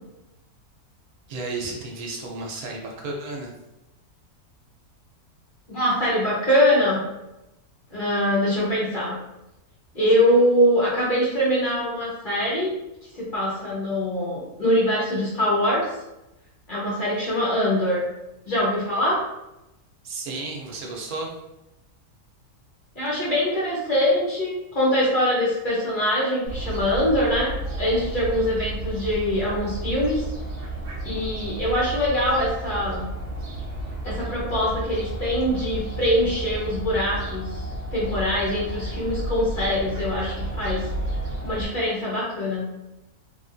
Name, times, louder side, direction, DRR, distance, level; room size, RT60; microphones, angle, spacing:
voice 1, 1.3-3.5 20.0-21.3, right 3 dB, 75° right, 0 dB, 1.1 m, -33 dB
voice 2, 5.7-7.0 7.9-9.1 9.9-12.7 13.1-15.9 16.7-18.0 18.5-19.2 22.9-30.2 31.0-33.0 34.0-40.8 41.4-42.7, equal, 40° left, -7 dB, 0.8 m, -23 dB
Fowl, 26.5-41.6, right 2 dB, 55° right, 1.0 m, -32 dB
3.3 x 2.4 x 2.5 m, 0.94 s
omnidirectional pair, 1.6 m